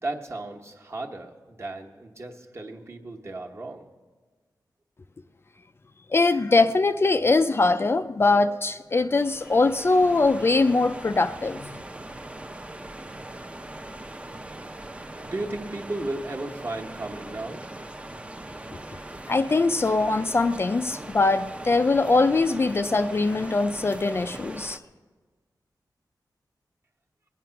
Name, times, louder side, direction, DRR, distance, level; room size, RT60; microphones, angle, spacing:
voice 1, 0.0-3.9 14.6-17.7, right 2 dB, 40° right, 1 dB, 1.2 m, -35 dB
voice 2, 6.1-11.8 19.3-24.8, left 3 dB, 35° left, 9 dB, 0.4 m, -22 dB
sound 1, 9.1-24.8, right 1 dB, 15° right, 0.6 m, -40 dB
20.0 x 9.3 x 5.8 m, 1.4 s
wide cardioid pair, 130°, 7 cm